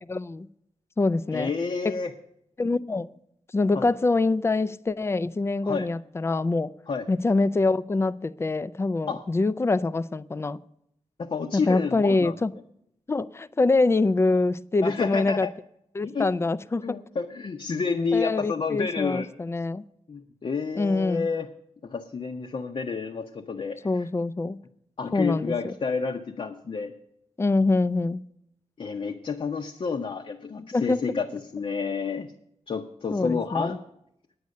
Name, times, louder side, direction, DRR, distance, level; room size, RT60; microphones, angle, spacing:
voice 1, 0.0-0.5 1.0-1.5 1.8-2.0 2.6-3.1 3.5-6.7 7.1-10.6 11.5-12.5 13.1-15.5 15.9-17.0 18.1-19.8 20.8-21.3 23.8-24.6 25.1-25.7 27.4-28.2 30.6-31.0 33.1-33.8, left 3 dB, 20° left, 0.3 m, -25 dB
voice 2, 1.3-2.1 3.7-3.9 5.6-5.9 6.9-7.1 9.1-9.2 11.2-12.3 14.8-15.5 16.0-16.3 16.8-19.3 20.1-21.5 21.8-24.1 25.0-26.9 28.8-32.3 32.7-33.8, left 5 dB, 50° left, 0.7 m, -30 dB
9.5 x 9.4 x 6.4 m
wide cardioid pair, 150°, 12 cm